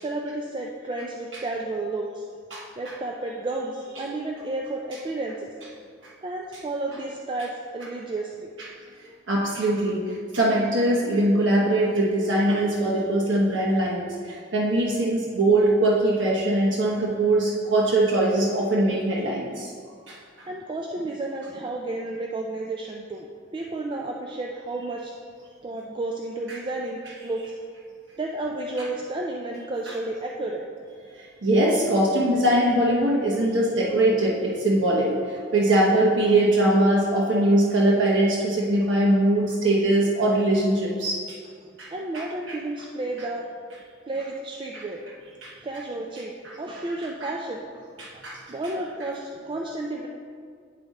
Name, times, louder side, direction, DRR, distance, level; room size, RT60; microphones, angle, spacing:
voice 1, 0.0-2.3 2.8-5.5 6.2-8.5 20.5-23.3 23.5-25.1 25.4-27.5 28.2-30.6 41.6-43.5 44.1-45.0 45.6-47.8 48.1-48.2 48.5-50.1, right 2 dB, 25° right, 0 dB, 0.4 m, -32 dB
voice 2, 9.3-19.7 20.1-20.2 31.4-35.1 35.5-41.4 41.8-41.9 42.1-42.2 45.4-45.5 48.0-48.4, right 1 dB, 85° right, -4 dB, 1.0 m, -21 dB
9.7 x 3.6 x 4.1 m, 2.1 s
head